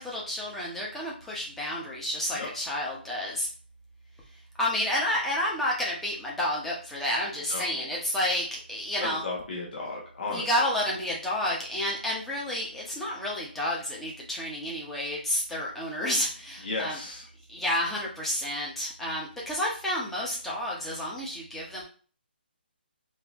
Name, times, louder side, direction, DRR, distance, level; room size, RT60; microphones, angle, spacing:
voice 1, 0.0-3.5 4.6-9.2 10.3-17.0 17.5-21.8, left 1 dB, 5° left, -4 dB, 0.9 m, -30 dB
voice 2, 7.5-7.8 9.0-10.5 16.6-17.2, left 3 dB, 55° left, -3 dB, 1.3 m, -34 dB
4.4 x 2.8 x 3.5 m, 0.40 s
hypercardioid pair, 160°, 6 cm